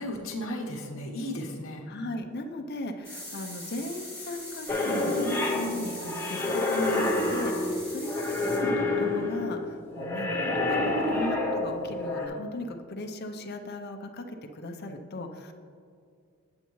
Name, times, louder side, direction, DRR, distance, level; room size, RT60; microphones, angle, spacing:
voice 1, 0.0-1.9, left 1 dB, 65° left, 0 dB, 1.0 m, -35 dB
voice 2, 1.9-15.5, left 1 dB, 50° left, 5 dB, 0.6 m, -37 dB
sound 1, 3.0-8.6, left 1 dB, 15° right, 1.9 m, -42 dB
sound 2, 4.7-12.3, left 2 dB, 10° left, 0.7 m, -28 dB
8.4 x 8.1 x 3.1 m, 2.3 s
head